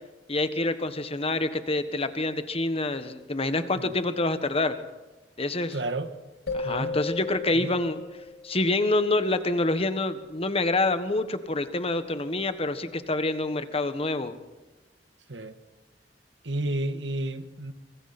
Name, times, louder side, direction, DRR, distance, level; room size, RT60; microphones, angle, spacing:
voice 1, 0.3-4.7 5.4-5.8 6.5-8.0 8.4-14.3, left 2 dB, 35° left, 1.5 m, -27 dB
voice 2, 5.7-6.1 6.6-7.0 7.5-7.7 15.3-15.5 16.4-17.7, right 1 dB, 85° right, 1.6 m, -31 dB
sound 1, 6.5-9.1, left 4 dB, 60° left, 2.2 m, -35 dB
25.5 x 23.5 x 4.4 m
head